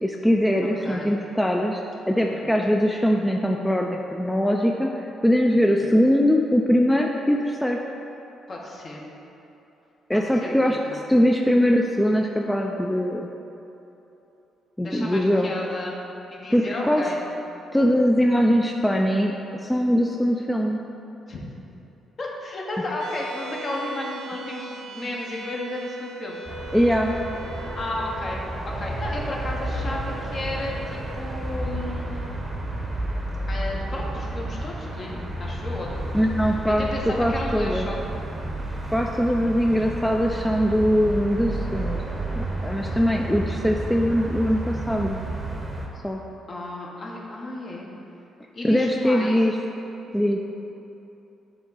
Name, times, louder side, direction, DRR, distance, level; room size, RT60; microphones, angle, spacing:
voice 1, 0.0-7.8 10.1-13.3 14.8-15.5 16.5-17.0 17.7-19.3 19.6-20.8 26.7-27.1 36.1-37.9 38.9-42.0 42.4-45.2 46.0-46.2 48.6-49.6 50.1-50.4, equal, 5° left, 1 dB, 0.3 m, -22 dB
voice 2, 0.6-1.1 2.2-2.5 5.7-5.9 8.5-9.1 10.1-11.0 14.8-16.0 16.3-17.2 21.3-21.4 22.2-26.4 27.5-32.3 33.5-36.3 36.7-38.0 46.5-47.9 48.5-49.4, left 2 dB, 45° left, -2 dB, 1.1 m, -33 dB
sound 1, 23.0-35.6, right 2 dB, 85° right, 0.6 m, -42 dB
sound 2, 26.4-45.9, right 1 dB, 20° right, 0.8 m, -31 dB
8.2 x 3.5 x 4.0 m, 3.0 s
cardioid pair, 90°, 0 cm